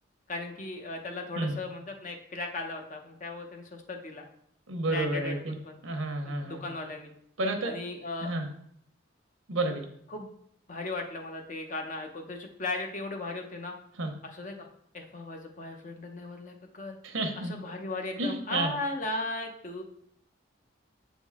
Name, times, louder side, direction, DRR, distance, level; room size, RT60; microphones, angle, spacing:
voice 1, 0.3-4.3 4.9-5.8 6.2-7.1 7.6-8.3 10.1-10.3 10.7-13.7 14.2-14.7 14.9-17.0 17.4-19.8, left 2 dB, 40° left, 3 dB, 0.7 m, -37 dB
voice 2, 4.7-5.5 5.8-6.6 7.4-7.7 8.2-8.5 9.5-9.8 14.0-14.1 17.0-17.5 18.2-18.7, right 2 dB, 80° right, 5 dB, 0.9 m, -30 dB
7.3 x 3.7 x 3.6 m, 0.70 s
head